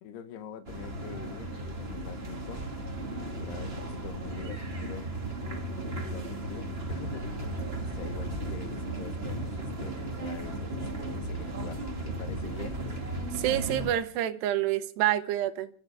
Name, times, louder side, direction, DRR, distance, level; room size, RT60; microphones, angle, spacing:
voice 1, 0.0-2.7 3.3-5.1 6.0-7.3 7.8-12.8, left 7 dB, 80° left, 3.4 m, -45 dB
sound 1, 0.7-13.9, right 1 dB, 20° right, 1.8 m, -35 dB
voice 2, 13.3-15.7, right 12 dB, 90° right, 3.2 m, -28 dB
30.0 x 14.0 x 3.5 m
omnidirectional pair, 4.7 m